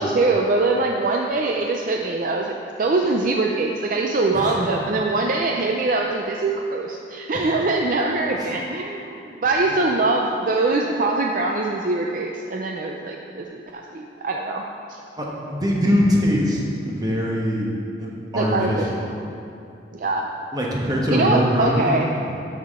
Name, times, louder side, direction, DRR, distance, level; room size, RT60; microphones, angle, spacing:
voice 1, 0.0-14.6 14.9-15.0 18.4-19.0 19.9-20.3 21.1-22.1, right 3 dB, 50° right, 1 dB, 0.4 m, -23 dB
voice 2, 4.3-4.8 8.4-8.5 15.1-16.6 16.9-17.7 18.0-19.0 20.5-21.9 22.2-22.3, equal, 20° right, -3 dB, 1.2 m, -22 dB
12.0 x 5.7 x 3.7 m, 2.6 s
head